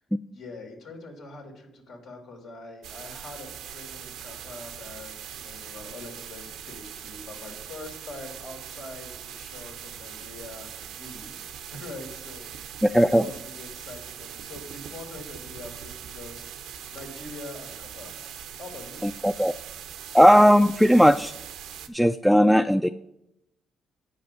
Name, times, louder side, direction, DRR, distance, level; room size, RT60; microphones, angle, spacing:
voice 1, 0.3-11.3 11.7-12.5 12.9-16.5 16.9-18.2 18.6-19.0, left 2 dB, 80° left, 0 dB, 2.4 m, -43 dB
sound 1, 2.8-21.9, right 9 dB, 85° right, 0.7 m, -41 dB
voice 2, 12.8-13.3 19.0-19.5 20.1-21.3 21.9-22.9, equal, ahead, 10 dB, 0.3 m, -17 dB
8.8 x 5.3 x 6.6 m, 0.84 s
cardioid pair, 90°, 0 cm